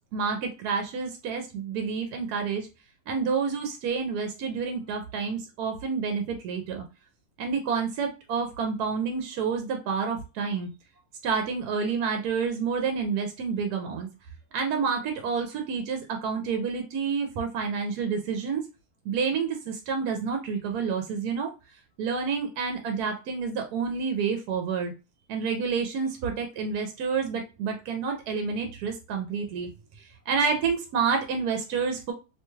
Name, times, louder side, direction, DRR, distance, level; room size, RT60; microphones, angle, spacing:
voice 1, 0.1-2.7 3.1-6.8 7.4-10.7 11.2-14.1 14.5-18.6 19.0-21.5 22.0-24.9 25.3-29.7 30.0-32.1, right 5 dB, 80° right, 4 dB, 1.1 m, -29 dB
2.9 x 2.2 x 3.1 m, 0.30 s
omnidirectional pair, 1.7 m